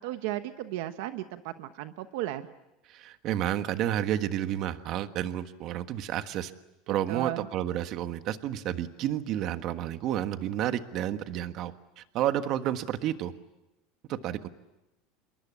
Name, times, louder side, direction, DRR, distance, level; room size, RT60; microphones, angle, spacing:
voice 1, 0.0-2.5 7.1-7.5, right 14 dB, 70° right, 10 dB, 1.1 m, -35 dB
voice 2, 2.9-6.5 6.9-13.3 14.1-14.5, right 11 dB, 45° right, 9 dB, 1.4 m, -31 dB
27.5 x 22.5 x 8.6 m, 0.97 s
supercardioid pair, 150°, 0 cm